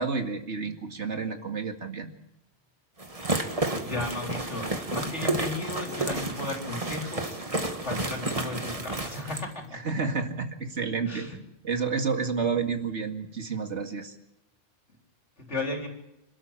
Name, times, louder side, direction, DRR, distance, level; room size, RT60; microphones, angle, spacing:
voice 1, 0.0-2.1 9.7-11.4 11.6-14.2, right 5 dB, 70° right, 5 dB, 2.4 m, -30 dB
sound 1, 3.0-9.5, right 2 dB, 30° right, 1.9 m, -31 dB
voice 2, 3.8-7.5 7.8-9.8 11.0-11.4 15.4-15.9, left 2 dB, 70° left, 2 dB, 4.5 m, -35 dB
26.5 x 13.0 x 8.9 m, 0.89 s
omnidirectional pair, 1.2 m